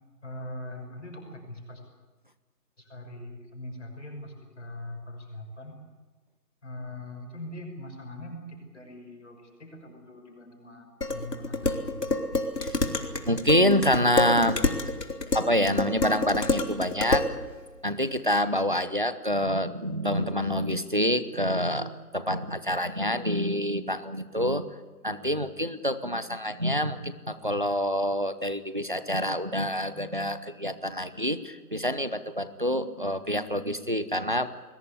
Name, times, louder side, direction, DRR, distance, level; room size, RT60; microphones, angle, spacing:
voice 1, 0.2-1.8 2.8-5.8 6.6-12.0, left 1 dB, 45° left, 3 dB, 6.1 m, -41 dB
Dishes pots and pans, 11.0-17.3, left 2 dB, 75° left, 3.4 m, -28 dB
voice 2, 13.3-14.6 15.3-17.3 17.8-24.6 25.0-34.5, equal, 30° right, 13 dB, 0.9 m, -27 dB
21.5 x 21.0 x 8.5 m, 1.3 s
figure-of-eight pair, 170°, 48 cm